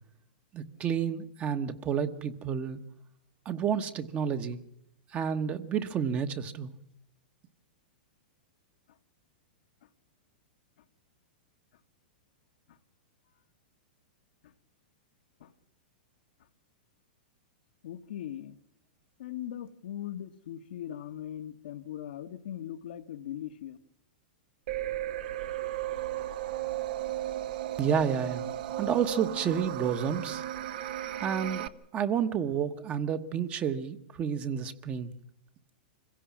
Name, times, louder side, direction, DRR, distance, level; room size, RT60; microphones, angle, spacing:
voice 1, 0.5-2.8 3.4-4.6 5.1-6.7 27.8-28.4 28.8-30.4 31.2-35.1, right 7 dB, 25° right, 1.1 m, -30 dB
voice 2, 17.8-18.6 19.2-23.8, left 11 dB, 70° left, 1.1 m, -40 dB
sound 1, 24.7-31.7, right 13 dB, 65° right, 1.0 m, -35 dB
25.0 x 16.5 x 7.3 m
hypercardioid pair, 135°, 5 cm